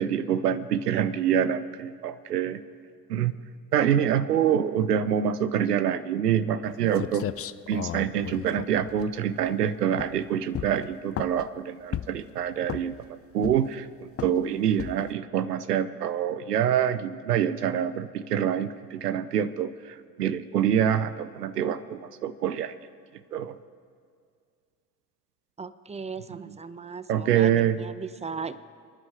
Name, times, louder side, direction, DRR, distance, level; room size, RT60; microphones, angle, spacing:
voice 1, 0.0-2.6 3.1-3.3 3.7-7.2 7.7-22.7 23.3-23.6 26.3-26.4 27.1-27.8, right 9 dB, 90° right, 13 dB, 0.6 m, -26 dB
sound 1, 6.6-6.7 6.9-9.5 9.9-10.2 10.5-11.5 11.9-12.3 12.6-13.1 13.4-13.8 14.2-14.4 14.8-15.1, left 11 dB, 30° left, 0.5 m, -34 dB
voice 2, 25.6-28.6, right 5 dB, 15° right, 14 dB, 0.8 m, -37 dB
29.5 x 9.9 x 4.8 m, 2.2 s
hypercardioid pair, 55°, 46 cm